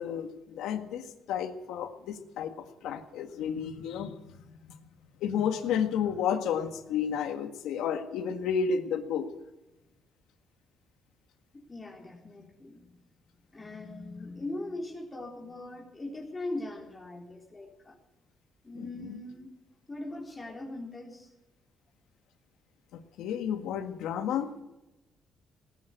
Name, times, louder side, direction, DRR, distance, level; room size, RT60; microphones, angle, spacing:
voice 1, 0.0-4.7 5.2-9.3 19.0-19.2 22.9-24.6, left 7 dB, 90° left, 7 dB, 1.7 m, -32 dB
voice 2, 11.5-12.9 13.5-18.0 18.6-19.5 19.9-21.3, left 2 dB, 25° left, -1 dB, 3.9 m, -40 dB
19.0 x 10.5 x 6.7 m, 0.98 s
cardioid pair, 90°, 0 cm